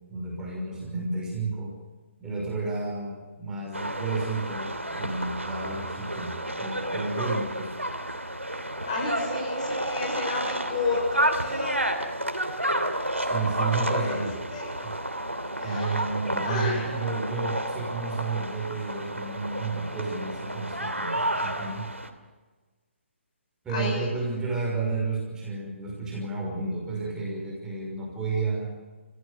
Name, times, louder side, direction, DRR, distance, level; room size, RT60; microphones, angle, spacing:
voice 1, 0.1-1.7 2.2-7.7 13.2-14.4 14.8-15.0 15.6-21.9 23.6-28.8, right 3 dB, 10° right, -3 dB, 5.7 m, -31 dB
sound 1, 3.7-22.1, right 1 dB, 85° right, 2.9 m, -31 dB
voice 2, 8.8-12.0 13.6-14.7 15.6-16.0 16.4-16.8 23.7-24.1, left 3 dB, 35° left, 0 dB, 6.7 m, -32 dB
29.5 x 16.5 x 6.7 m, 1.3 s
figure-of-eight pair, 140°, 7 cm